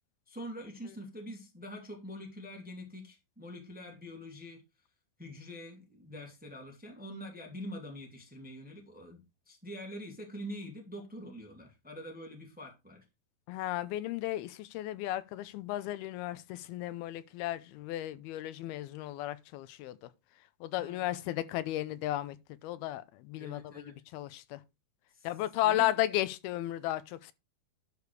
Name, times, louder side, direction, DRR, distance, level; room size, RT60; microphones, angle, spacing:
voice 1, 0.3-4.6 5.2-13.0 20.8-21.1 23.4-23.9 25.1-25.3 25.6-25.9, equal, 5° right, 1.7 m, -45 dB
voice 2, 13.5-20.1 20.6-23.9 24.1-24.6 25.2-27.3, left 14 dB, 85° left, 2.6 m, -34 dB
11.5 x 5.1 x 4.7 m
omnidirectional pair, 4.4 m